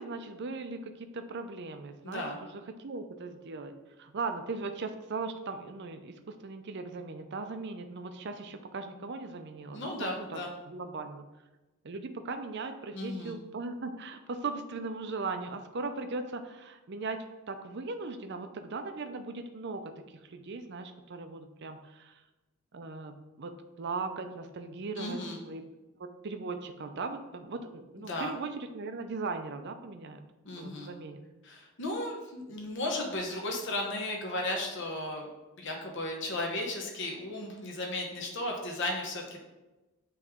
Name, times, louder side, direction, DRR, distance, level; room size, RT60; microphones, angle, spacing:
voice 1, 0.0-11.3 11.8-22.2 22.7-25.6 26.0-30.3 30.6-31.2, right 3 dB, 50° right, 7 dB, 0.5 m, -39 dB
voice 2, 2.0-2.4 9.7-10.5 12.9-13.4 25.0-25.4 28.1-28.3 30.4-30.9 31.4-35.3 35.6-39.4, left 1 dB, 55° left, 0 dB, 1.0 m, -35 dB
9.2 x 3.2 x 3.6 m, 1.1 s
head